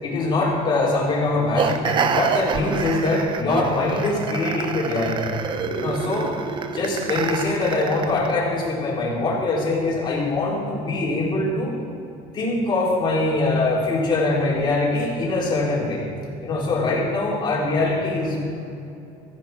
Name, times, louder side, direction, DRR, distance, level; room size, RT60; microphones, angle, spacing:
voice 1, 0.0-5.1 5.8-6.3 6.7-11.7 12.3-16.0 16.4-18.4, left 2 dB, 30° left, -5 dB, 4.5 m, -23 dB
sound 1, 1.6-8.3, right 6 dB, 35° right, 0.8 m, -27 dB
16.0 x 15.0 x 4.6 m, 2.7 s
cardioid pair, 145°, 15 cm